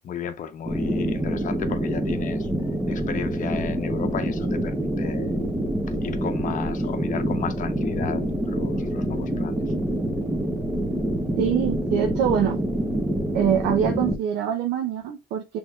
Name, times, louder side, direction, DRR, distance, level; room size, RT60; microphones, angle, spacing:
voice 1, 0.0-2.5 2.9-5.3 5.9-9.6, left 8 dB, 50° left, 0.8 m, -34 dB
sound 1, 0.7-14.2, right 1 dB, 10° right, 0.8 m, -26 dB
voice 2, 11.4-12.6 13.3-15.6, right 9 dB, 90° right, 0.6 m, -24 dB
6.1 x 3.4 x 2.3 m
cardioid pair, 110°, 17 cm